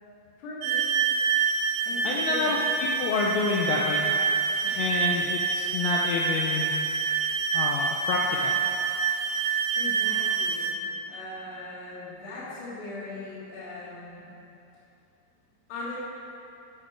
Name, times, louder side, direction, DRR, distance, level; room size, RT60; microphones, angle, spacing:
voice 1, 0.4-0.9 1.8-2.5 4.6-5.0 9.8-10.8 11.0-14.2 15.7-16.0, left 2 dB, 50° left, -7 dB, 2.1 m, -39 dB
sound 1, 0.6-10.8, right 6 dB, 85° right, 2.5 m, -27 dB
voice 2, 2.0-4.2 4.8-6.8 7.5-8.6, left 4 dB, 85° left, -2 dB, 2.5 m, -28 dB
12.0 x 5.2 x 4.4 m, 2.7 s
omnidirectional pair, 5.8 m